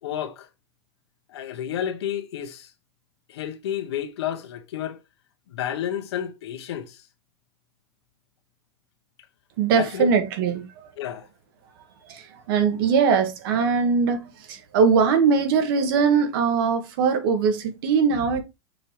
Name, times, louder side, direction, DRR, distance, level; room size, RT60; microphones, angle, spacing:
voice 1, 0.0-0.5 1.3-2.7 3.3-5.0 5.5-7.0 9.8-10.1 11.0-11.2, left 10 dB, 80° left, 1.3 m, -30 dB
voice 2, 9.6-10.9 12.0-18.4, right 5 dB, 55° right, 1.6 m, -21 dB
6.6 x 3.4 x 4.4 m
supercardioid pair, 150°, 14 cm